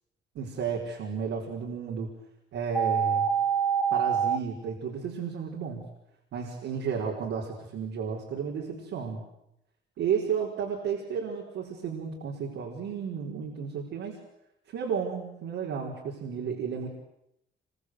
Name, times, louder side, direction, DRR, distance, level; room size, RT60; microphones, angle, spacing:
voice 1, 0.3-2.1 2.5-3.3 3.9-5.8 6.3-9.2 10.0-14.2 14.7-16.9, right 6 dB, 80° right, -2 dB, 4.9 m, -32 dB
sound 1, 2.7-4.4, right 7 dB, 5° left, 2.8 m, -25 dB
25.5 x 23.5 x 8.1 m, 0.83 s
cardioid pair, 90°, 20 cm